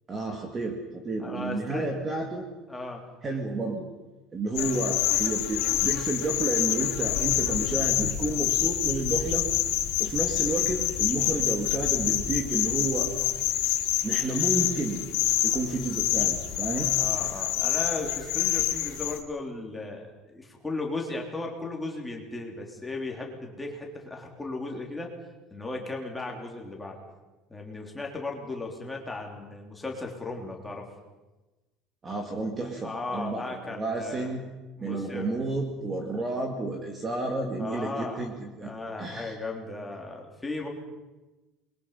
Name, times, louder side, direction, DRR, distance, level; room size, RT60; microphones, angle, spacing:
voice 1, 0.1-2.5 3.2-3.8 4.3-9.5 10.0-13.1 14.0-15.1 15.4-16.9 32.0-34.5 34.8-39.4, right 2 dB, 15° right, 3 dB, 2.2 m, -31 dB
voice 2, 1.2-2.0 2.7-3.0 4.7-4.9 17.0-25.1 25.5-27.0 27.5-30.9 32.8-34.3 34.8-35.4 37.6-38.3 38.6-40.7, left 2 dB, 5° left, 0 dB, 3.4 m, -36 dB
sound 1, 4.5-19.2, left 13 dB, 85° left, 2.3 m, -27 dB
27.5 x 22.5 x 5.7 m, 1.1 s
cardioid pair, 180°, 0 cm